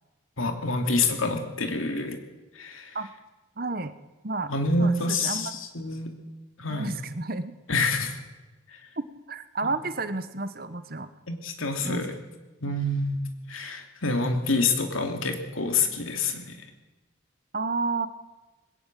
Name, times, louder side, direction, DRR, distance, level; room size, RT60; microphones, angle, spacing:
voice 1, 0.4-2.2 2.5-3.1 4.5-6.1 6.6-7.0 7.7-8.2 9.6-9.8 11.3-12.2 12.6-13.2 13.5-16.6, left 3 dB, 85° left, 5 dB, 2.8 m, -27 dB
voice 2, 3.6-3.9 4.2-4.5 4.8-5.5 6.7-7.5 9.0-11.1 11.8-12.0 12.6-12.7 17.5-18.1, right 3 dB, 45° right, 12 dB, 1.1 m, -31 dB
20.5 x 17.5 x 7.6 m, 1.2 s
head